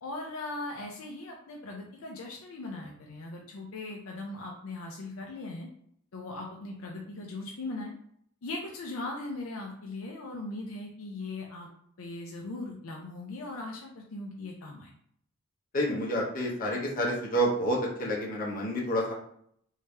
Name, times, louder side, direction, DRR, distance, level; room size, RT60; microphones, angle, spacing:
voice 1, 0.0-5.7 6.1-7.9 8.4-11.7 12.0-14.9, left 2 dB, 70° left, 0 dB, 0.5 m, -39 dB
voice 2, 15.7-19.1, equal, 40° left, -3 dB, 0.9 m, -29 dB
3.3 x 2.7 x 3.3 m, 0.67 s
head